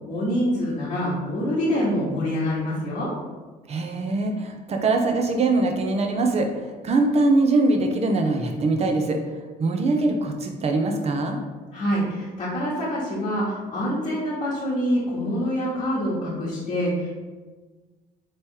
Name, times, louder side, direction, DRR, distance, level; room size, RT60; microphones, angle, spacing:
voice 1, 0.1-3.1 11.7-17.2, equal, 40° left, -8 dB, 1.1 m, -25 dB
voice 2, 3.7-6.5 6.8-9.2 9.6-11.4, right 2 dB, 40° right, 4 dB, 0.7 m, -22 dB
3.4 x 3.0 x 4.5 m, 1.3 s
cardioid pair, 110°, 17 cm